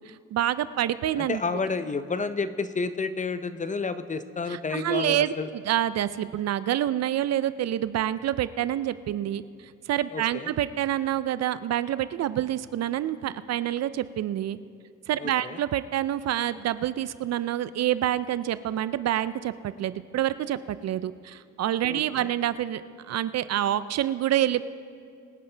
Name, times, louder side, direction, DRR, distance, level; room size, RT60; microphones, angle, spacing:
voice 1, 0.1-1.4 4.5-9.4 9.9-14.6 15.1-22.8 23.1-24.6, right 12 dB, 60° right, 15 dB, 0.5 m, -27 dB
voice 2, 1.2-5.5 10.1-10.5 15.2-15.6 21.9-22.3, left 4 dB, 25° left, 12 dB, 0.6 m, -30 dB
23.5 x 10.0 x 3.3 m, 2.3 s
cardioid pair, 90°, 30 cm